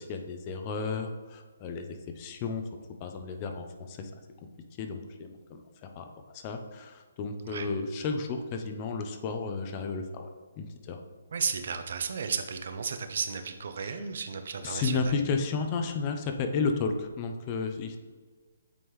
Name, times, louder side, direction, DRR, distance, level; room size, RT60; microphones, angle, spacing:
voice 1, 0.0-2.6 3.0-4.2 4.8-6.1 6.3-10.3 10.6-11.0 13.8-14.1 14.6-18.0, left 4 dB, 30° left, 5 dB, 0.6 m, -33 dB
voice 2, 11.3-15.0, right 6 dB, 60° right, 8 dB, 0.6 m, -33 dB
8.4 x 3.6 x 3.1 m, 1.4 s
hypercardioid pair, 155°, 0 cm